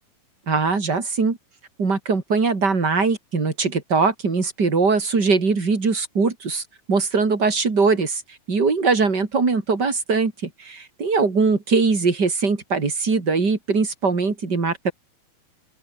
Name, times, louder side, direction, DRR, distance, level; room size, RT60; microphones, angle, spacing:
voice 1, 0.5-1.4 1.8-6.6 6.9-8.2 8.5-14.9, right 4 dB, 30° right, 3.9 m, -21 dB
open air
omnidirectional pair, 4.1 m